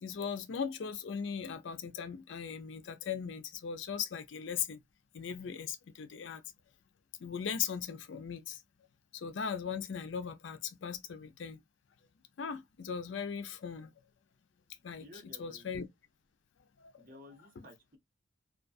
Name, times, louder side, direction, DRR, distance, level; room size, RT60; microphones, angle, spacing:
voice 1, 0.0-4.8 5.1-6.4 7.2-8.6 9.1-11.6 12.4-13.9 14.8-15.9 16.8-17.1 17.6-17.7, left 7 dB, 65° left, 0.4 m, -38 dB
voice 2, 15.0-15.7 17.0-18.0, left 1 dB, 45° right, 0.8 m, -54 dB
2.3 x 2.3 x 2.4 m
head